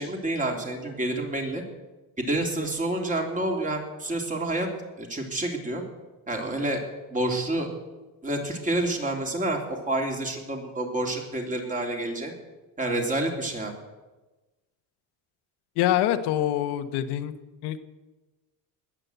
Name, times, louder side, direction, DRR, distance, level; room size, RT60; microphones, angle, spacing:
voice 1, 0.0-1.6 2.2-4.7 5.0-5.8 6.3-6.8 7.1-7.7 8.2-12.3 12.8-13.7, right 1 dB, 20° right, 1 dB, 3.2 m, -28 dB
voice 2, 15.8-17.3 17.6-17.8, left 12 dB, 85° left, 10 dB, 1.3 m, -25 dB
20.5 x 8.8 x 8.0 m, 1.2 s
cardioid pair, 135°, 39 cm